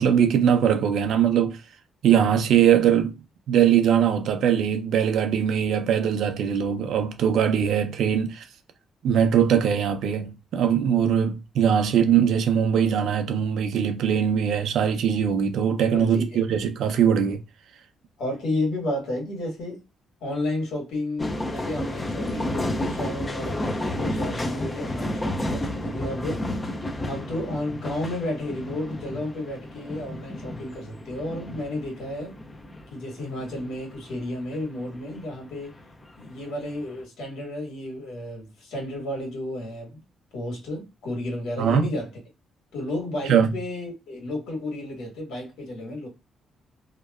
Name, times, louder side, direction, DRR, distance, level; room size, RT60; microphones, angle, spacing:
voice 1, 0.0-1.6 2.0-3.2 3.5-8.4 9.0-17.4 41.6-41.9 43.2-43.5, right 8 dB, 75° right, 0.5 m, -21 dB
voice 2, 15.9-16.4 18.2-19.8 20.2-26.4 27.1-32.3 32.9-35.8 36.2-40.0 40.3-42.1 42.7-46.1, left 1 dB, 80° left, 1.5 m, -32 dB
sound 1, 21.2-35.2 35.6-37.0, left 1 dB, 25° left, 0.5 m, -31 dB
2.8 x 2.2 x 2.2 m
cardioid pair, 90°, 0 cm